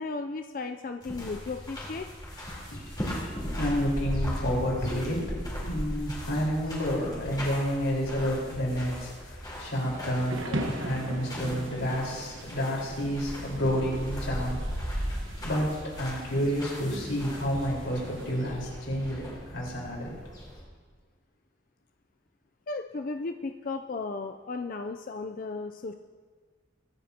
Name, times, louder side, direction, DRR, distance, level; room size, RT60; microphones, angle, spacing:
voice 1, 0.0-2.1 22.7-25.9, left 3 dB, 45° left, 6 dB, 0.4 m, -35 dB
sound 1, 1.0-20.6, equal, 20° left, 3.7 m, -37 dB
voice 2, 2.7-15.0 15.4-15.7 16.0-20.1, equal, 90° left, -3 dB, 4.3 m, -30 dB
Thunder / Rain, 9.5-18.5, right 1 dB, 85° right, 1.2 m, -40 dB
23.5 x 9.4 x 2.9 m, 1.5 s
head